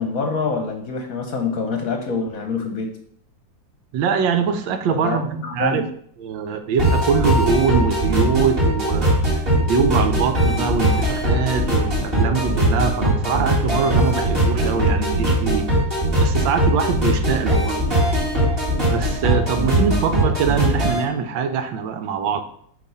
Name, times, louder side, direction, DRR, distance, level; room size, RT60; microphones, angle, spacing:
voice 1, 0.0-2.9 4.9-5.8, left 4 dB, 60° left, 5 dB, 1.1 m, -26 dB
voice 2, 3.9-5.8 6.2-9.2 9.6-15.7 16.2-18.1 18.9-22.4, right 6 dB, 85° right, 8 dB, 1.4 m, -23 dB
sound 1, 6.8-21.0, right 1 dB, 30° right, 2.4 m, -20 dB
8.1 x 3.0 x 5.4 m, 0.65 s
omnidirectional pair, 2.0 m